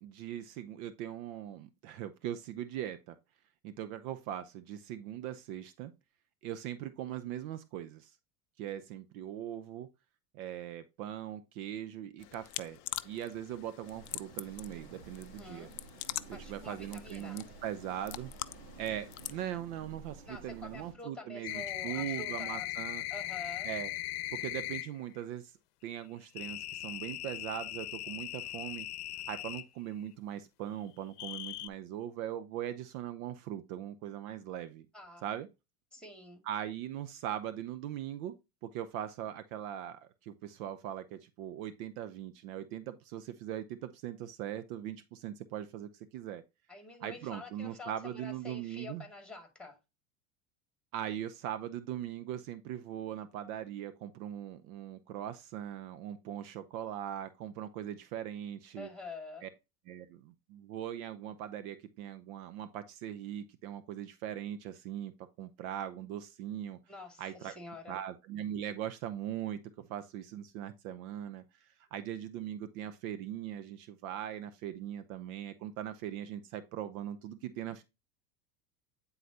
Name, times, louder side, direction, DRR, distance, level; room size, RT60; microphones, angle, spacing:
voice 1, 0.0-3.2 3.6-5.9 6.4-8.1 8.6-9.9 10.3-12.8 13.0-15.7 16.3-18.3 18.8-23.0 23.6-23.9 24.3-25.5 25.8-28.9 29.3-34.9 35.2-35.5 36.5-38.3 38.6-46.4 47.0-49.0 50.9-58.9 59.4-59.5 59.9-65.1 65.4-66.8 67.2-67.5 67.9-77.8, right 11 dB, 65° right, 0.8 m, -40 dB
sound 1, 12.2-19.4, left 19 dB, 40° left, 0.4 m, -44 dB
sound 2, 13.8-20.9, right 4 dB, 90° right, 1.7 m, -52 dB
voice 2, 15.4-15.7 16.3-17.4 20.3-22.7 23.1-23.7 34.9-35.2 35.9-36.4 46.7-49.8 58.8-59.5 66.9-68.0, left 3 dB, ahead, 2.3 m, -47 dB
sound 3, 21.4-24.9 26.4-29.7 31.2-31.7, left 15 dB, 75° left, 0.7 m, -39 dB
9.2 x 4.0 x 2.8 m
hypercardioid pair, 100°, 46 cm